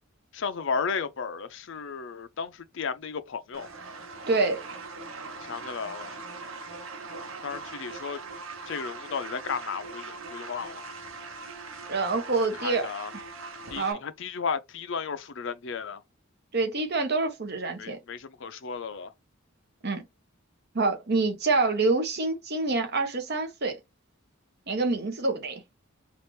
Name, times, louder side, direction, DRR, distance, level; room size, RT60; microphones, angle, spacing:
voice 1, 0.3-3.7 5.4-6.1 7.4-8.2 8.7-10.9 12.5-13.1 13.7-16.0 17.8-19.1, left 5 dB, 65° left, 0.5 m, -34 dB
sound 1, 3.5-13.9, right 3 dB, 85° right, 1.0 m, -41 dB
voice 2, 4.3-4.6 11.9-12.9 13.1-13.2 13.8-14.0 16.5-18.0 19.8-20.0 20.7-23.8 24.7-25.6, right 3 dB, 50° right, 1.1 m, -26 dB
4.4 x 2.5 x 3.2 m
head